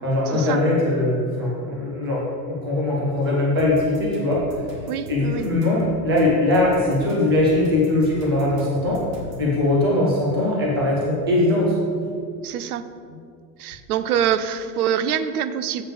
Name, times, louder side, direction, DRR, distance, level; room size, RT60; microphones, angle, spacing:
voice 1, 0.0-9.0 9.4-11.7, left 2 dB, 15° right, -4 dB, 0.4 m, -21 dB
sound 1, 3.6-9.5, right 1 dB, 40° right, 1.3 m, -39 dB
voice 2, 4.9-5.5 12.4-12.9 13.6-15.8, right 9 dB, 65° right, 12 dB, 0.6 m, -25 dB
7.2 x 7.2 x 3.5 m, 2.2 s
supercardioid pair, 180°, 48 cm